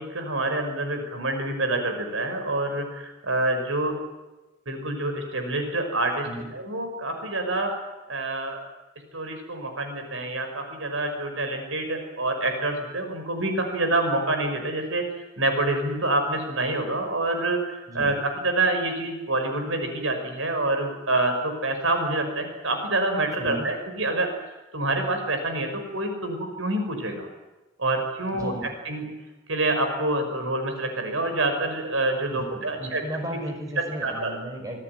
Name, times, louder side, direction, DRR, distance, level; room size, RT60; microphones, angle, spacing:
voice 1, 0.0-4.0 4.7-6.3 6.5-7.7 8.1-8.6 9.1-15.0 15.4-17.6 17.9-24.3 24.7-27.3 27.8-28.5 28.9-29.1 29.5-33.0 34.0-34.3, right 2 dB, 90° right, 5 dB, 5.6 m, -27 dB
voice 2, 28.3-28.7 32.3-34.8, right 1 dB, 20° right, 4 dB, 5.3 m, -35 dB
26.0 x 17.5 x 9.4 m, 1.1 s
head